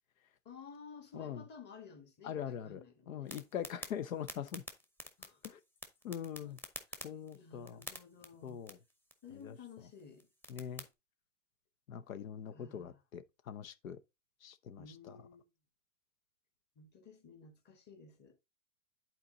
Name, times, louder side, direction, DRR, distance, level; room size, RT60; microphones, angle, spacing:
voice 1, 0.4-3.4 5.2-5.4 6.4-6.6 6.9-8.7 9.2-10.3 12.5-13.0 14.8-15.5 16.7-18.3, left 5 dB, 25° left, 1.7 m, -54 dB
voice 2, 2.2-4.6 5.4-5.6 6.0-6.6 7.0-7.8 8.4-8.8 9.4-9.5 10.5-10.8 11.9-14.0 14.4-15.2, left 9 dB, 90° left, 0.8 m, -42 dB
sound 1, 3.3-10.9, equal, 5° left, 0.9 m, -51 dB
8.6 x 4.4 x 3.8 m
hypercardioid pair, 130°, 40 cm